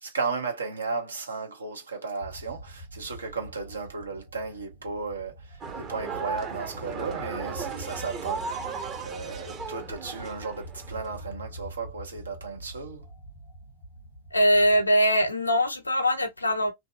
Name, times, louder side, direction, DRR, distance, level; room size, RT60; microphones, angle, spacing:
voice 1, 0.0-8.7 9.0-13.1, right 4 dB, 75° right, 0.7 m, -35 dB
sound 1, 2.2-14.8, right 1 dB, 90° right, 1.2 m, -44 dB
sound 2, 5.6-11.3, right 5 dB, 30° right, 0.7 m, -36 dB
voice 2, 14.3-16.7, equal, 80° left, 0.5 m, -22 dB
2.7 x 2.2 x 2.3 m
figure-of-eight pair, 90°, 0 cm